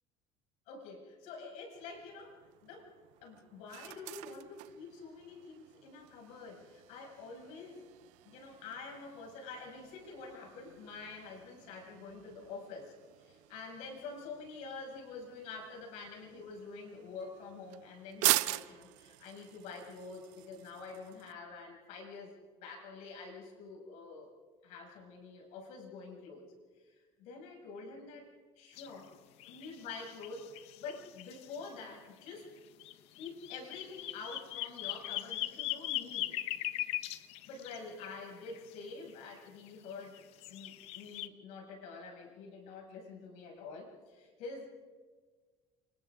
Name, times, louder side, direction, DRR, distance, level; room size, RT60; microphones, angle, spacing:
voice 1, 0.7-2.9 3.2-7.9 8.2-12.9 13.2-22.3 22.6-24.3 24.6-26.4 26.8-28.3 28.6-29.1 29.5-32.5 33.2-36.4 37.5-44.7, left 4 dB, 75° left, 0 dB, 6.4 m, -47 dB
sound 1, 1.7-21.3, right 19 dB, 85° right, 0.6 m, -42 dB
sound 2, 28.8-28.9 29.4-31.7 32.8-38.7 39.7-41.3, left 14 dB, 60° left, 0.8 m, -40 dB
29.5 x 26.0 x 3.7 m, 1.5 s
cardioid pair, 175°, 12 cm